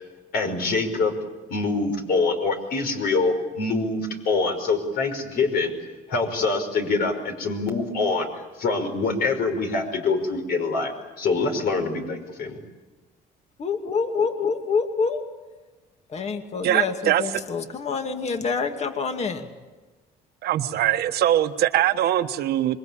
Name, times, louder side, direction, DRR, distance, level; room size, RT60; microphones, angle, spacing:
voice 1, 0.3-1.1 1.5-5.7 6.1-12.6, left 3 dB, 65° left, 5 dB, 5.3 m, -25 dB
voice 2, 13.6-15.2 16.1-19.5, left 5 dB, 40° left, 6 dB, 2.4 m, -26 dB
voice 3, 16.6-17.4 20.4-22.8, right 12 dB, 70° right, 8 dB, 1.4 m, -22 dB
26.5 x 22.5 x 8.8 m, 1.2 s
cardioid pair, 110°, 17 cm